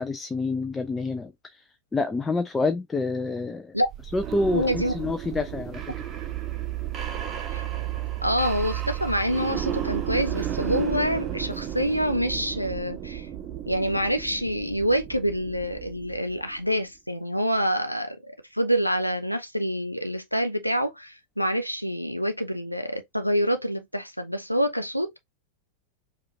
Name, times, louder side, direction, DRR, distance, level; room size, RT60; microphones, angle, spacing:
voice 1, 0.0-1.3 1.9-3.7 4.1-5.8, left 3 dB, 15° left, 0.4 m, -27 dB
sound 1, 3.8-16.6, right 11 dB, 30° right, 0.8 m, -33 dB
voice 2, 4.5-4.9 7.5-7.6 8.2-13.3 13.7-25.2, equal, 90° left, 0.5 m, -26 dB
4.9 x 2.4 x 2.8 m
figure-of-eight pair, 90°, 0 cm